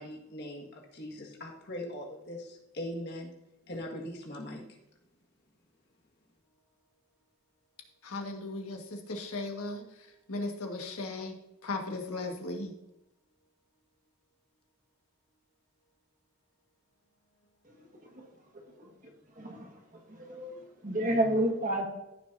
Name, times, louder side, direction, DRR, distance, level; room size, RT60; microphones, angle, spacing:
voice 1, 0.0-3.3 3.7-4.6, left 1 dB, 50° left, 1.8 m, -40 dB
voice 2, 8.0-9.8 10.3-11.3 11.6-12.7, left 2 dB, 85° left, 1.6 m, -36 dB
voice 3, 19.4-19.7 20.1-20.6 20.8-21.8, right 1 dB, 35° right, 1.6 m, -29 dB
14.5 x 6.3 x 2.7 m
head